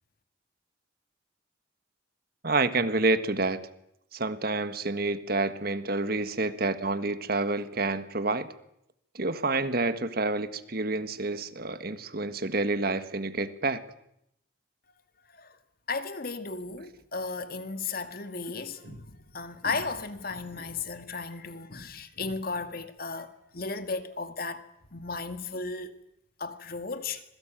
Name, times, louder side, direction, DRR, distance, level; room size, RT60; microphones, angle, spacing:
voice 1, 2.4-3.6 4.1-8.5 9.1-13.8 18.8-19.0, right 3 dB, 50° right, 1.6 m, -28 dB
voice 2, 15.9-24.6 24.9-25.9 26.4-27.2, left 4 dB, 50° left, 2.1 m, -35 dB
26.5 x 21.5 x 9.1 m
head